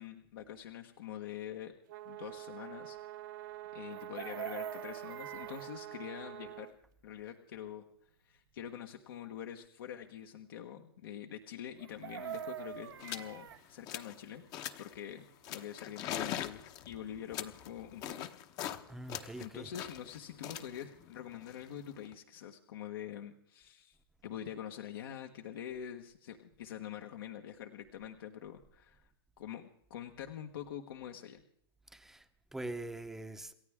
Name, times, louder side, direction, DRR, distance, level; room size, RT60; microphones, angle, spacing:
voice 1, 0.0-1.7 2.0-3.0 3.7-6.7 7.0-7.8 8.2-14.4 14.8-18.3 19.4-24.0 24.2-29.1 29.4-29.6 29.9-31.4, left 10 dB, 65° left, 1.4 m, -45 dB
sound 1, 1.9-6.7, right 15 dB, 55° right, 1.1 m, -46 dB
Chicken rooster, 3.9-5.7 11.8-13.6 15.8-15.9 16.2-16.5, right 10 dB, 85° right, 1.1 m, -43 dB
sound 2, 12.0-12.1 12.2-12.5 13.0-13.3 13.7-14.2 14.5-15.0 15.4-18.8 19.1-22.1, left 11 dB, 30° left, 1.0 m, -42 dB
voice 2, 18.9-19.7 31.9-33.5, right 2 dB, 5° right, 0.9 m, -43 dB
28.0 x 13.5 x 3.7 m
hypercardioid pair, 150°, 13 cm